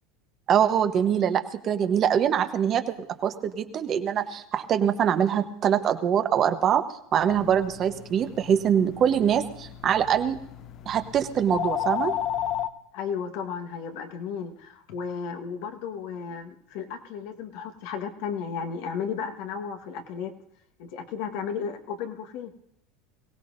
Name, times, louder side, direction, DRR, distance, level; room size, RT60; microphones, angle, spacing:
voice 1, 0.5-2.9 3.2-6.8 7.1-10.4 10.9-12.1, right 9 dB, 45° right, 8 dB, 1.1 m, -23 dB
sound 1, 7.3-12.7, left 10 dB, 50° left, 0.6 m, -33 dB
voice 2, 12.9-20.3 20.8-22.5, left 6 dB, 70° left, 5 dB, 1.5 m, -34 dB
22.0 x 16.5 x 2.7 m, 0.78 s
hypercardioid pair, 100°, 0 cm